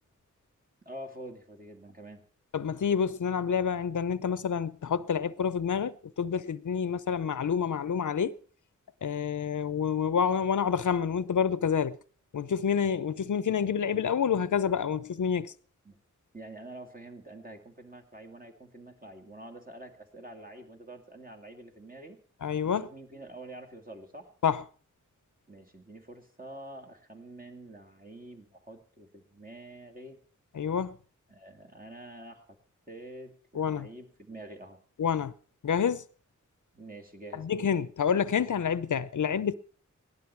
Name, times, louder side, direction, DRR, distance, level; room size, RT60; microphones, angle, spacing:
voice 1, 0.8-2.2 15.8-16.0 16.3-22.2 22.6-24.3 25.5-30.2 31.3-32.6 32.9-34.8 36.7-37.7, right 1 dB, 30° right, 2.3 m, -47 dB
voice 2, 2.5-8.4 9.0-12.0 12.3-15.5 22.4-22.9 24.4-24.6 30.5-30.9 33.5-33.9 35.0-35.3 35.6-36.0 37.4-39.5, left 7 dB, 75° left, 0.7 m, -28 dB
17.0 x 11.5 x 4.5 m
wide cardioid pair, 55°, 31 cm